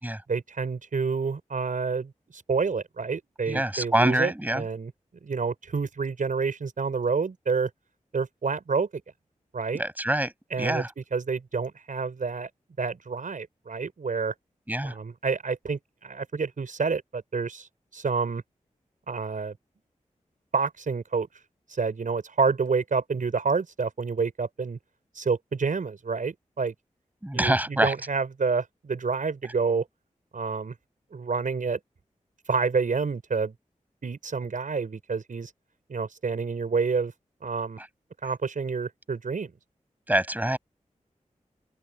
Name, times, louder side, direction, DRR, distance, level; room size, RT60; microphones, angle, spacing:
voice 1, 0.3-4.9 5.2-7.7 8.1-9.0 9.5-9.8 10.5-10.8 11.1-12.5 12.8-14.3 14.8-17.7 17.9-18.4 19.1-19.6 20.5-21.3 21.7-24.8 25.1-26.7 27.3-29.9 30.3-30.7 31.1-31.8 32.5-33.5 34.0-35.5 35.9-37.1 37.4-37.8 38.2-39.5, right 5 dB, 75° right, 5.5 m, -28 dB
voice 2, 3.5-4.6 9.7-10.3 10.6-10.9 14.7-14.9 27.2-27.9 40.1-40.6, right 1 dB, 10° right, 7.9 m, -25 dB
open air
cardioid pair, 55°, 14 cm